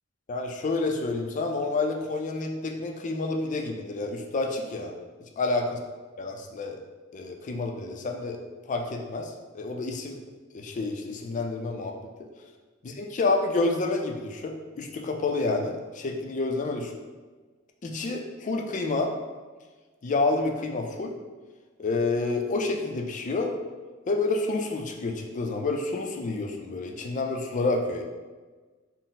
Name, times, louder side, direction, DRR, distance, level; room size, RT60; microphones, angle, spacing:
voice 1, 0.3-5.0 5.4-5.6 6.2-6.8 7.1-8.4 8.7-10.2 10.5-11.9 12.2-12.3 12.8-16.9 17.8-19.1 20.0-21.2 21.8-23.5 24.1-28.0, left 3 dB, 40° left, 3 dB, 0.4 m, -29 dB
4.1 x 2.0 x 3.9 m, 1.4 s
head